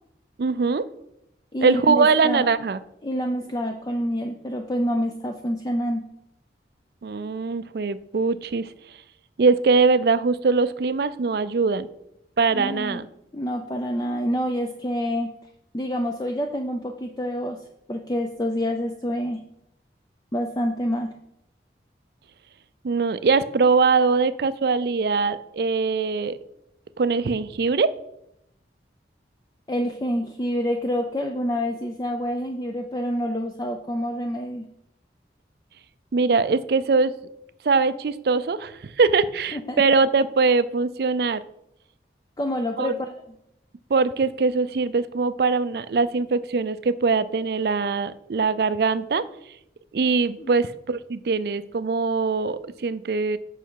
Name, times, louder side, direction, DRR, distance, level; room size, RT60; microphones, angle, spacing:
voice 1, 0.4-0.9 1.6-2.8 7.0-8.7 9.4-11.9 12.4-13.1 22.8-26.4 27.0-27.9 36.1-37.1 37.6-41.4 42.8-42.9 43.9-49.3 49.9-53.4, right 4 dB, 60° right, 14 dB, 0.4 m, -22 dB
voice 2, 1.5-2.5 3.0-6.0 12.5-13.0 13.3-15.3 15.7-17.6 17.9-19.4 20.3-21.1 29.7-34.7 39.5-39.8 42.4-43.0 50.4-50.5, equal, 20° left, 4 dB, 0.4 m, -27 dB
7.9 x 5.8 x 4.6 m, 0.82 s
head